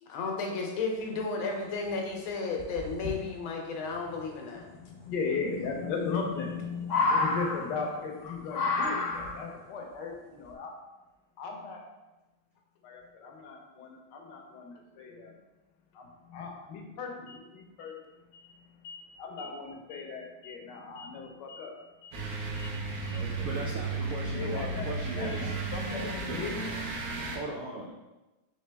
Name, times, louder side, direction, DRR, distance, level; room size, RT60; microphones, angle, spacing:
voice 1, 0.0-4.7 8.3-8.4, left 4 dB, 90° left, 1 dB, 1.6 m, -33 dB
sound 1, 1.5-1.6 1.9-2.0 2.6-3.1 4.7-4.8 6.0-6.5 6.8-8.0 8.5-9.5 10.5-10.6, left 3 dB, 55° left, 0.9 m, -29 dB
voice 2, 4.5-10.7 11.4-11.8 12.8-15.4 15.9-21.7 22.0-23.5 24.0-24.1 24.3-27.4, left 4 dB, 70° left, 1 dB, 1.2 m, -38 dB
sound 2, 22.1-27.4, right 3 dB, 60° right, 1.1 m, -34 dB
voice 3, 23.4-25.5 26.3-26.4 27.3-27.9, right 2 dB, 90° right, -1 dB, 0.8 m, -38 dB
4.1 x 3.4 x 3.3 m, 1.1 s
omnidirectional pair, 2.2 m